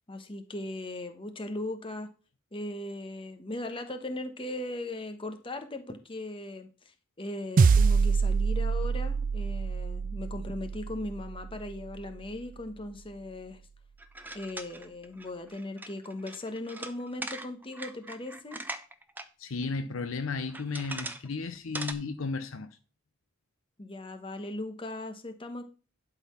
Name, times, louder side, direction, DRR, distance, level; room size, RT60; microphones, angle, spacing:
voice 1, 0.1-2.1 2.5-13.6 14.3-18.6 23.8-25.6, left 1 dB, 25° left, 1.1 m, -38 dB
sound 1, 7.6-12.1, right 5 dB, 40° right, 0.3 m, -26 dB
sound 2, 14.0-19.3 19.6-19.7 20.4-21.3 21.5-21.9, right 2 dB, 10° right, 0.7 m, -40 dB
voice 2, 19.4-22.8, left 4 dB, 70° left, 0.6 m, -34 dB
11.5 x 4.0 x 5.6 m
head